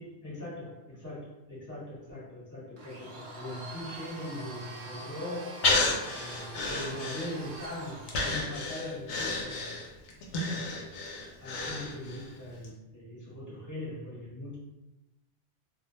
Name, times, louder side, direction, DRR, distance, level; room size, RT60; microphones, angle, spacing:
voice 1, 0.0-5.7 6.1-9.8 10.4-10.7 11.4-14.6, left 1 dB, 15° left, -9 dB, 1.0 m, -41 dB
Domestic sounds home sounds, 2.8-8.7, right 2 dB, 80° right, 0.9 m, -44 dB
Breathing, 5.6-7.6 8.1-12.3 12.6-12.7, left 2 dB, 90° left, 0.9 m, -31 dB
2.5 x 2.2 x 2.8 m, 0.97 s
omnidirectional pair, 1.1 m